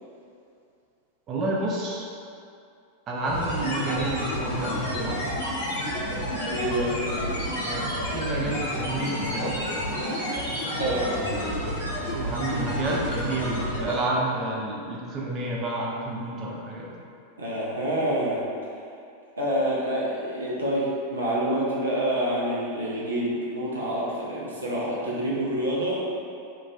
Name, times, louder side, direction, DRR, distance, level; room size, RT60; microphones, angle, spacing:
voice 1, 1.3-2.1 3.1-5.3 7.6-9.7 12.1-16.9, right 2 dB, 30° right, -3 dB, 0.5 m, -30 dB
sound 1, 3.3-14.2, equal, 65° left, 1.0 m, -30 dB
voice 2, 6.5-7.4 10.8-11.2 17.4-18.4 19.4-26.0, right 1 dB, 70° right, -6 dB, 0.6 m, -27 dB
3.8 x 2.4 x 2.6 m, 2.5 s
figure-of-eight pair, 90°, 0 cm